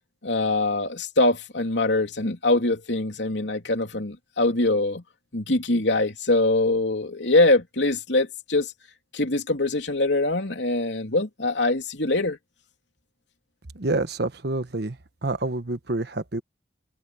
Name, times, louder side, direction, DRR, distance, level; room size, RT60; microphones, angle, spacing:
voice 1, 0.2-5.0 5.3-8.7 9.1-12.4, left 2 dB, 75° left, 3.3 m, -23 dB
voice 2, 13.7-15.0 15.2-16.4, right 2 dB, 60° right, 1.3 m, -27 dB
open air
head